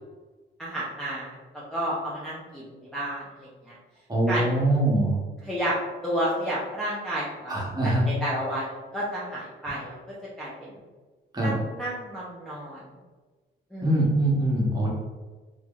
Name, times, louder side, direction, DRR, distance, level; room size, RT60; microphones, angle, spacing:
voice 1, 0.6-3.7 4.3-4.6 5.4-5.8 6.0-10.8 11.4-12.8 13.7-14.0, right 1 dB, ahead, -8 dB, 0.8 m, -31 dB
voice 2, 4.1-5.2 7.5-8.0 11.3-11.5 13.8-14.9, right 1 dB, 20° right, -4 dB, 1.3 m, -23 dB
3.1 x 2.6 x 3.8 m, 1.3 s
cardioid pair, 90°, 20 cm